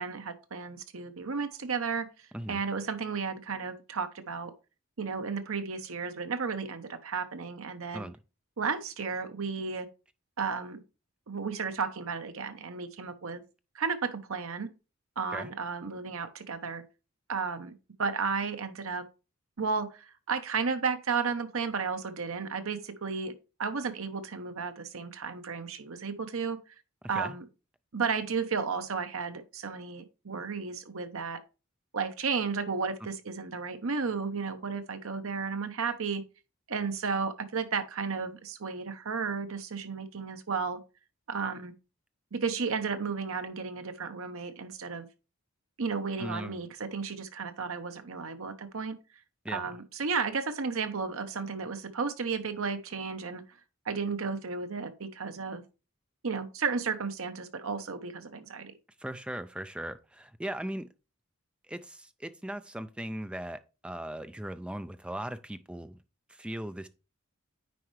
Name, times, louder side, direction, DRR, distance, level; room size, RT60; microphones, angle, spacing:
voice 1, 0.0-2.1 2.5-4.5 5.0-8.1 8.6-9.9 10.4-10.8 11.3-13.4 13.7-14.7 15.2-16.8 17.3-17.7 18.0-19.0 19.6-23.3 23.6-26.6 27.1-27.4 27.9-31.4 31.9-36.2 36.7-40.8 41.3-41.7 42.3-45.1 45.8-49.0 49.5-53.4 53.9-55.6 56.2-58.7, right 5 dB, 70° right, 0.9 m, -33 dB
voice 2, 46.2-46.6 49.4-49.7 59.0-60.9 61.7-66.0 66.3-66.9, right 1 dB, 5° right, 0.4 m, -38 dB
9.5 x 4.5 x 3.2 m
head